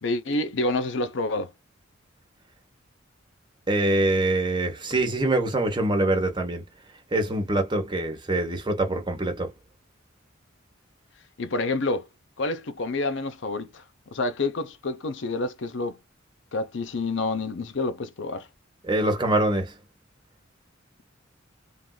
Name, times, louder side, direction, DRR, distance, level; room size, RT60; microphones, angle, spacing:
voice 1, 0.0-1.5 11.4-12.1 12.4-13.8 14.1-16.0 16.5-18.5, left 2 dB, 70° left, 0.7 m, -28 dB
voice 2, 3.7-6.6 7.1-9.5 18.8-19.7, right 1 dB, 25° right, 1.0 m, -24 dB
3.5 x 2.6 x 2.2 m
head